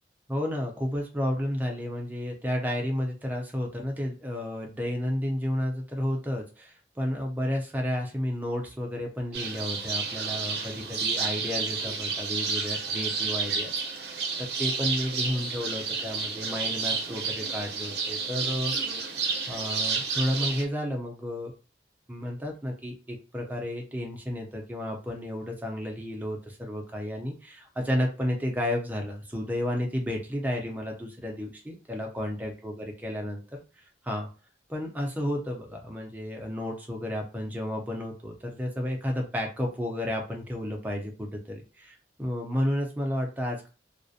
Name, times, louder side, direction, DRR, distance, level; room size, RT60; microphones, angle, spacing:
voice 1, 0.3-18.8 19.1-21.5 22.1-34.3 34.7-43.7, left 1 dB, 10° right, 1 dB, 0.4 m, -32 dB
sound 1, 9.3-20.7, right 4 dB, 65° right, 0.5 m, -30 dB
2.4 x 2.1 x 2.6 m, 0.34 s
head